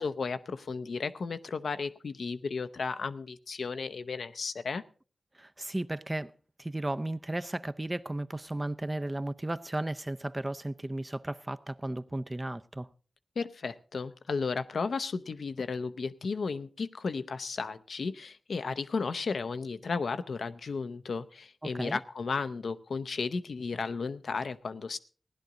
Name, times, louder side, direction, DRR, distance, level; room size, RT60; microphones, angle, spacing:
voice 1, 0.0-4.8 13.4-25.0, left 4 dB, 80° left, 0.6 m, -34 dB
voice 2, 5.4-6.3 6.6-12.9 21.6-22.0, right 1 dB, 25° right, 0.6 m, -34 dB
16.0 x 10.5 x 3.8 m
cardioid pair, 45°, 0 cm